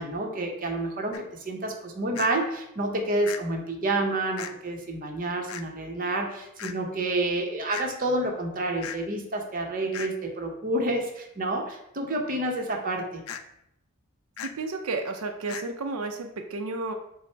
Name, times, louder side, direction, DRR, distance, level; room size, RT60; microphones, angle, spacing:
voice 1, 0.0-13.2, right 2 dB, 40° right, 2 dB, 0.7 m, -29 dB
sound 1, 1.1-1.2 2.1-2.3 3.3-3.4 4.4-4.5 5.5-5.6 6.6-6.7 7.7-7.9 8.8-9.0 9.9-10.1 13.3-13.4 14.4-14.5 15.5-15.6, left 8 dB, 75° left, 0.3 m, -36 dB
voice 2, 14.4-16.9, right 3 dB, 85° right, 5 dB, 0.5 m, -32 dB
5.8 x 2.0 x 4.4 m, 0.81 s
head